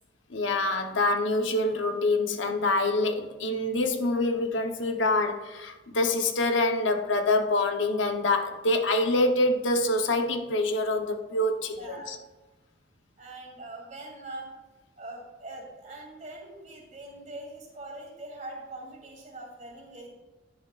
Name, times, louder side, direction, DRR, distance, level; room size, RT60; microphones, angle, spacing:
voice 1, 0.3-12.2, left 2 dB, 75° left, 4 dB, 1.0 m, -26 dB
voice 2, 11.7-12.2 13.2-14.5 15.0-20.1, right 2 dB, 40° right, -1 dB, 2.6 m, -42 dB
10.5 x 10.0 x 2.5 m, 1.2 s
head